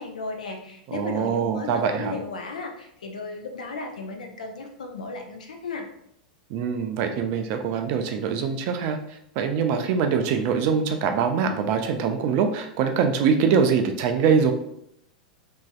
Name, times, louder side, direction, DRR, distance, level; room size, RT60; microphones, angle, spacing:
voice 1, 0.0-5.9, left 3 dB, 70° left, 4 dB, 0.5 m, -35 dB
voice 2, 0.9-2.1 6.5-9.0 9.4-14.5, right 6 dB, 45° right, 6 dB, 0.3 m, -23 dB
3.0 x 2.6 x 2.3 m, 0.75 s
figure-of-eight pair, 90°, 4 cm